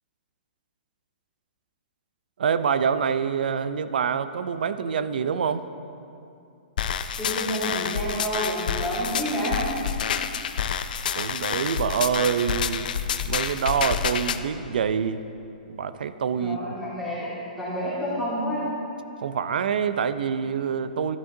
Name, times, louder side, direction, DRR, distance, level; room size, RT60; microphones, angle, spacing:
voice 1, 2.4-5.6 11.1-12.9 13.3-15.2 15.7-16.6 19.2-21.2, right 7 dB, 70° right, 12 dB, 0.5 m, -26 dB
sound 1, 6.8-14.4, left 8 dB, 65° left, 0.4 m, -28 dB
voice 2, 7.2-9.7 16.4-18.6, equal, ahead, -12 dB, 1.7 m, -29 dB
12.0 x 8.7 x 2.7 m, 2.5 s
hypercardioid pair, 155°, 5 cm